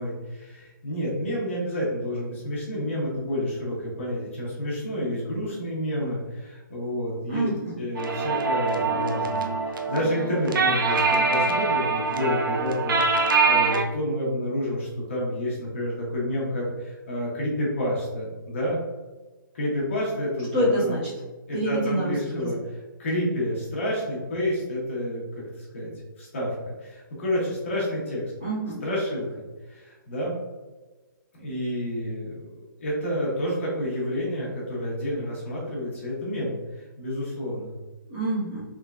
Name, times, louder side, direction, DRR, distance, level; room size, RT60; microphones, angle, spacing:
voice 1, 0.0-7.5 7.8-18.8 19.5-21.0 21.5-22.6 23.0-25.2 25.5-25.9 26.2-28.2 28.8-29.4 29.7-30.4 31.3-32.5 32.8-37.7, equal, 35° left, -5 dB, 0.9 m, -29 dB
voice 2, 7.3-7.8 20.5-21.0 21.5-22.5 28.4-28.8 38.1-38.6, right 1 dB, 25° right, -9 dB, 1.2 m, -27 dB
sound 1, 8.0-13.8, right 4 dB, 70° right, 0.5 m, -24 dB
3.5 x 3.1 x 2.3 m, 1.2 s
hypercardioid pair, 180°, 11 cm